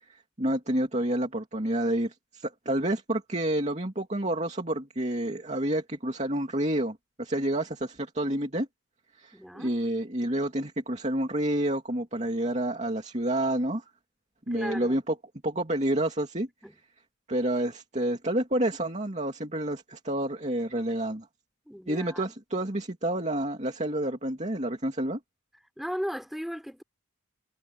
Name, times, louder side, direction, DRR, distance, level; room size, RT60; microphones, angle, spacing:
voice 1, 0.0-8.7 9.2-13.8 14.5-15.1 15.4-16.5 17.3-21.3 21.9-25.2, right 1 dB, 30° right, 2.6 m, -29 dB
voice 2, 9.3-9.7 14.5-15.0 16.6-16.8 21.7-22.3 25.8-26.8, equal, ahead, 4.4 m, -36 dB
head